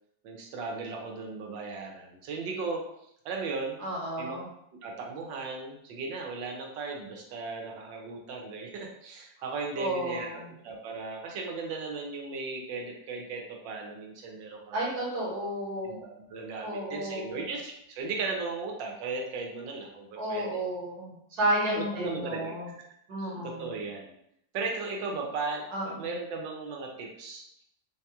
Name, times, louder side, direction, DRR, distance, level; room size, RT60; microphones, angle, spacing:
voice 1, 0.2-2.8 3.2-3.8 4.2-4.4 4.8-14.8 15.8-20.5 21.8-22.6 23.2-24.1 24.5-27.6, right 3 dB, 85° right, 0 dB, 1.4 m, -36 dB
voice 2, 3.8-4.5 9.4-9.5 9.8-10.5 14.7-16.0 16.6-17.5 20.2-22.7 23.1-23.8 25.7-26.1, right 1 dB, 60° right, -4 dB, 1.5 m, -32 dB
4.0 x 2.2 x 2.8 m, 0.75 s
omnidirectional pair, 2.0 m